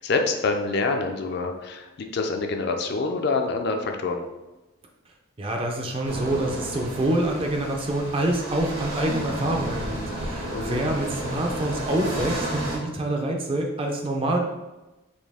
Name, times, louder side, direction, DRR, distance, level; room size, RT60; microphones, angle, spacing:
voice 1, 0.0-4.2 10.5-10.8, left 3 dB, 50° left, 4 dB, 0.4 m, -26 dB
voice 2, 5.4-14.4, right 1 dB, 25° right, 2 dB, 0.4 m, -26 dB
sound 1, 6.0-12.8, right 1 dB, 80° right, 1.3 m, -32 dB
4.2 x 2.6 x 3.4 m, 1.1 s
head